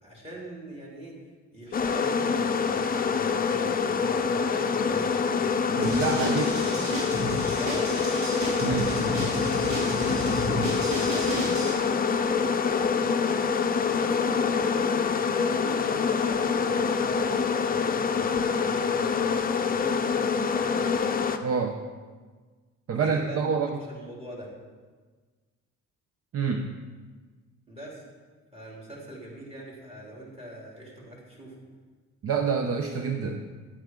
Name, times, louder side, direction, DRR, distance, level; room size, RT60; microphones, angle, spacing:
voice 1, 0.0-1.2 1.5-5.6 6.0-6.7 7.5-8.0 8.7-9.0 9.6-21.1 22.9-23.5 23.8-24.5 27.7-28.0 28.5-31.6, equal, 20° right, -4 dB, 3.2 m, -43 dB
sound 1, 1.7-21.4, left 5 dB, 30° left, 0.6 m, -26 dB
voice 2, 5.8-6.5 8.6-8.9 21.4-21.8 22.9-23.7 26.3-26.7 32.2-33.4, right 5 dB, 50° right, 5 dB, 0.7 m, -27 dB
sound 2, 5.8-11.7, equal, 70° right, 3.2 m, -32 dB
9.8 x 8.9 x 3.7 m, 1.4 s
cardioid pair, 90°, 30 cm